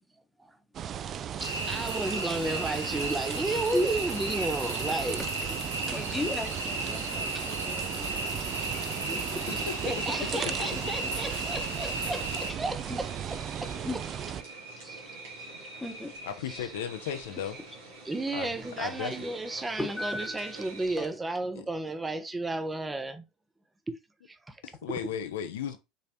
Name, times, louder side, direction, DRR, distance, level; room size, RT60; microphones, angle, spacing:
sound 1, 0.7-14.4, right 9 dB, 40° right, 0.3 m, -37 dB
voice 1, 0.8-5.6 7.8-8.0 9.5-14.0 14.8-15.0 16.5-16.7 18.0-23.2 23.9-24.0 24.5-24.6, right 2 dB, 15° right, 0.8 m, -33 dB
sound 2, 1.4-12.5, right 2 dB, 90° right, 0.9 m, -34 dB
voice 2, 5.9-8.5 9.0-9.5 10.4-11.1 12.9-13.0 13.6-14.0 15.8-16.1 19.8-20.6 21.0-21.1, left 1 dB, 5° left, 1.1 m, -35 dB
sound 3, 8.4-21.1, right 3 dB, 75° right, 1.7 m, -46 dB
voice 3, 9.5-10.1 10.4-10.9 16.2-17.6 18.3-18.5 18.8-19.3 21.5-21.7 24.6-25.8, left 8 dB, 70° left, 0.6 m, -36 dB
5.4 x 3.3 x 2.7 m
figure-of-eight pair, 70°, 0 cm